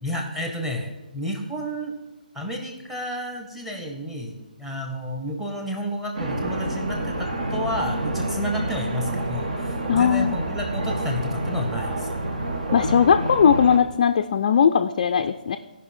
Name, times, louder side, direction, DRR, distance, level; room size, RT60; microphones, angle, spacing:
voice 1, 0.0-1.9 2.3-12.1, equal, 5° right, 3 dB, 1.0 m, -31 dB
sound 1, 6.1-13.8, right 1 dB, 60° right, 1.5 m, -28 dB
voice 2, 9.9-10.4 12.7-15.6, left 7 dB, 40° left, 7 dB, 0.4 m, -19 dB
15.5 x 5.6 x 4.3 m, 1.1 s
figure-of-eight pair, 140°, 5 cm